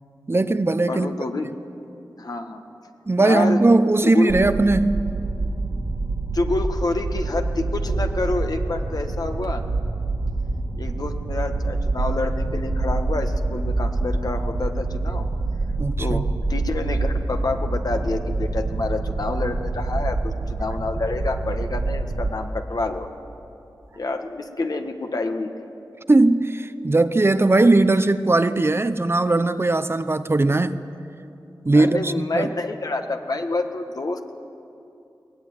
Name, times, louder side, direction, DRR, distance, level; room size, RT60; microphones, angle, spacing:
voice 1, 0.3-1.1 3.1-5.1 15.8-16.2 26.1-30.8 31.6-32.5, right 2 dB, 35° right, 11 dB, 0.8 m, -19 dB
voice 2, 0.9-1.5 2.2-2.6 3.2-3.6 4.0-4.3 6.3-9.6 10.8-15.3 16.0-23.1 23.9-25.7 31.7-34.4, left 2 dB, 55° left, 5 dB, 1.6 m, -28 dB
sound 1, 4.3-22.3, right 2 dB, 75° right, 2.1 m, -26 dB
22.5 x 18.5 x 9.6 m, 2.7 s
wide cardioid pair, 90°, 8 cm